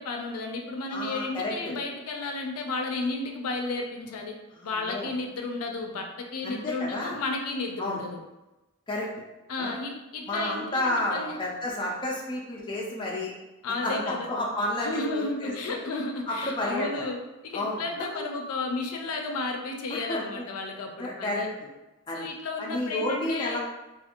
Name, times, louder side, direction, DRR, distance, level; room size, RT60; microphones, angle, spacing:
voice 1, 0.0-4.3 4.6-8.2 9.5-11.4 13.6-14.3 14.8-17.2 17.4-21.5 22.1-23.6, left 3 dB, 85° left, 3 dB, 0.4 m, -33 dB
voice 2, 0.9-1.7 4.5-5.1 6.4-7.2 7.8-8.0 8.9-9.1 9.6-9.7 10.3-13.3 13.8-15.8 16.3-17.0 17.5-17.8 19.9-20.5 21.0-21.5 22.1-22.3 22.6-23.6, left 1 dB, 20° left, -3 dB, 0.4 m, -31 dB
2.5 x 2.4 x 2.8 m, 1.0 s
head